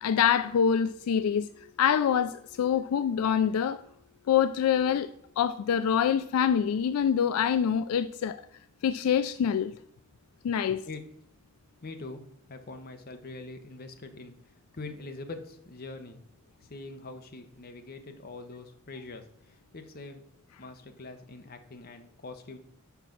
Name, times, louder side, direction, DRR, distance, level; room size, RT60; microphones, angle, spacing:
voice 1, 0.0-1.5 1.8-3.8 4.3-5.1 5.4-8.4 8.8-9.7 10.4-10.8, left 8 dB, 80° left, 0.3 m, -25 dB
voice 2, 11.8-12.2 12.5-14.3 14.7-16.2 16.6-20.2 20.6-22.6, left 3 dB, 45° left, 0.9 m, -43 dB
5.8 x 5.0 x 5.8 m
head